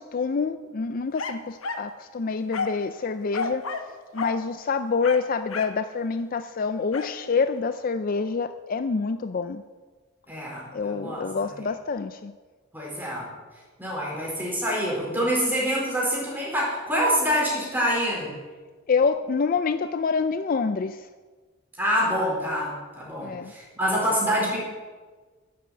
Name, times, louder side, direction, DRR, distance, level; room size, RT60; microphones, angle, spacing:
voice 1, 0.0-3.6 4.1-9.6 10.7-12.3 18.9-21.1 23.2-23.5, left 5 dB, 45° left, 11 dB, 0.4 m, -27 dB
sound 1, 1.2-1.9 2.5-2.9 3.3-3.9 4.2-4.4 5.0-5.8 6.9-7.2, left 4 dB, 85° left, 1.0 m, -31 dB
voice 2, 10.3-11.2 12.7-13.3 13.8-18.4 21.8-24.6, equal, 10° right, -4 dB, 4.6 m, -26 dB
11.5 x 7.7 x 7.7 m, 1.4 s
head